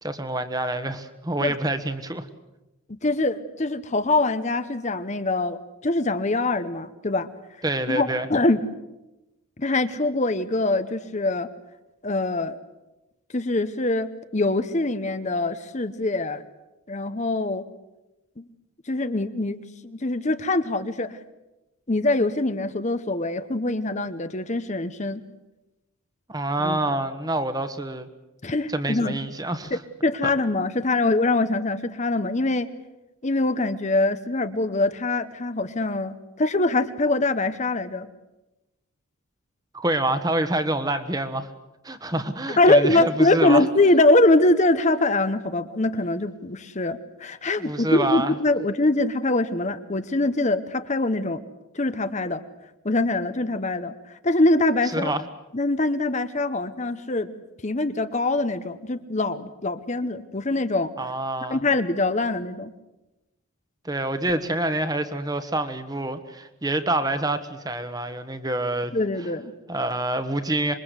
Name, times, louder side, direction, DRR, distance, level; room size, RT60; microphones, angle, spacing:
voice 1, 0.0-2.3 7.6-8.3 26.3-28.1 28.7-29.8 39.7-41.5 41.8-43.7 47.6-48.4 54.9-55.2 61.0-61.6 63.8-68.9 69.7-70.7, right 1 dB, 15° right, 10 dB, 1.3 m, -27 dB
voice 2, 3.0-7.3 7.9-8.6 9.6-11.5 12.0-12.6 13.3-16.4 16.9-17.6 18.4-18.5 18.9-21.2 21.9-25.2 26.6-26.8 28.4-29.1 29.7-32.7 33.2-38.1 42.6-51.4 51.7-52.4 52.8-53.9 54.2-55.1 55.5-57.3 57.6-60.9 61.5-62.7 68.9-69.5, left 2 dB, 30° left, 11 dB, 0.9 m, -23 dB
26.5 x 22.5 x 8.2 m, 1.0 s
head